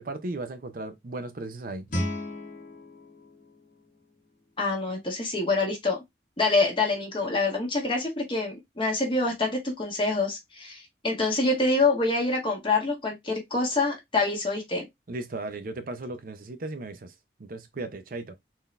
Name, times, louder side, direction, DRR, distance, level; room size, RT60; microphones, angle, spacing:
voice 1, 0.0-1.9 15.1-17.1 17.4-18.4, right 2 dB, 50° right, 0.6 m, -36 dB
Guitar, 1.9-4.7, left 1 dB, 45° left, 1.3 m, -36 dB
voice 2, 4.6-6.0 6.4-14.8, left 3 dB, 30° left, 1.3 m, -26 dB
3.9 x 2.7 x 3.2 m
head